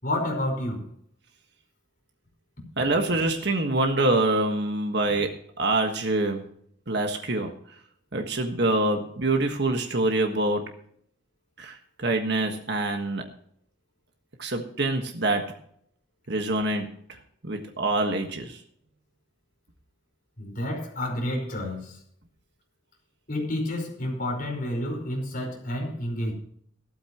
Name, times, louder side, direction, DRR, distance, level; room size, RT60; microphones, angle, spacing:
voice 1, 0.0-0.9 20.4-22.0 23.3-26.3, left 1 dB, 45° left, 5.1 m, -30 dB
voice 2, 2.8-6.4 6.9-7.5 8.1-10.7 11.6-13.2 14.4-15.5 16.3-16.9 17.4-18.6, right 2 dB, 60° right, 1.5 m, -25 dB
15.5 x 13.5 x 3.0 m
head